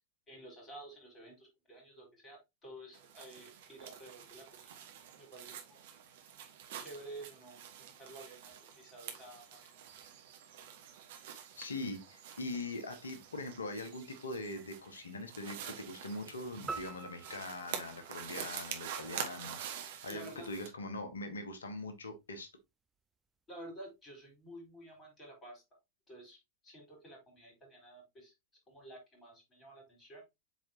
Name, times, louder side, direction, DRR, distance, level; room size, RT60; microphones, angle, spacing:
voice 1, 0.3-5.8 6.8-9.4 20.1-20.5 23.5-25.6 26.1-28.3 28.7-30.2, right 1 dB, 20° left, 4.7 m, -52 dB
sound 1, 2.9-20.7, right 8 dB, 55° right, 1.3 m, -47 dB
voice 2, 11.6-19.6 20.0-22.5, left 2 dB, 70° left, 1.2 m, -42 dB
sound 2, 16.7-19.1, right 4 dB, 15° right, 0.4 m, -46 dB
7.8 x 4.2 x 2.9 m
figure-of-eight pair, 90°, 0 cm